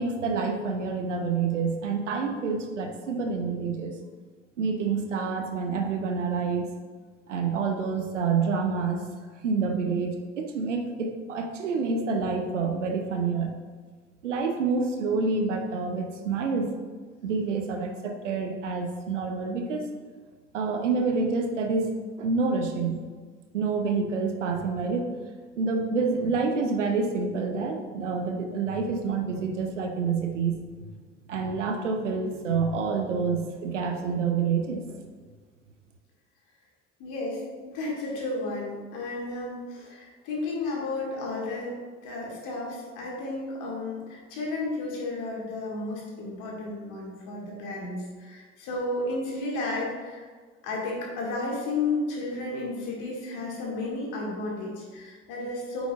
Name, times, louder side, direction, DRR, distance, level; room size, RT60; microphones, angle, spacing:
voice 1, 0.0-3.9 4.6-6.7 7.3-9.0 9.4-13.5 14.2-16.7 17.2-19.8 20.5-21.9 22.2-23.0 23.5-25.1 25.6-30.9 31.3-35.0, right 4 dB, 80° right, 4 dB, 0.8 m, -28 dB
voice 2, 37.0-50.3 50.6-55.9, left 2 dB, 55° left, -3 dB, 1.9 m, -33 dB
8.9 x 5.2 x 2.4 m, 1.5 s
figure-of-eight pair, 55°, 36 cm